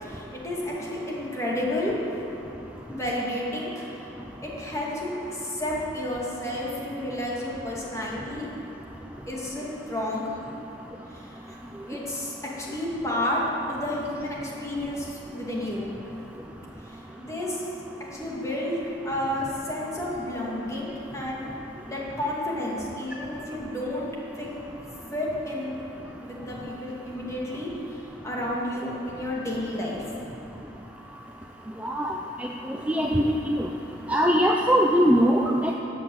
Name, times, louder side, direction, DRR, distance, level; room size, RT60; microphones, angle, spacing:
voice 1, 0.0-2.0 2.9-3.9 4.4-8.5 9.3-10.4 11.1-11.6 11.9-13.4 13.7-15.9 16.8-17.7 18.1-21.4 21.9-24.1 24.4-24.5 25.1-25.8 26.2-28.0 28.2-30.0, left 1 dB, 20° left, -5 dB, 2.4 m, -31 dB
voice 2, 31.8-32.2 32.9-33.7 34.1-35.7, equal, 10° right, 0 dB, 0.6 m, -21 dB
13.5 x 8.6 x 7.9 m, 3.0 s
head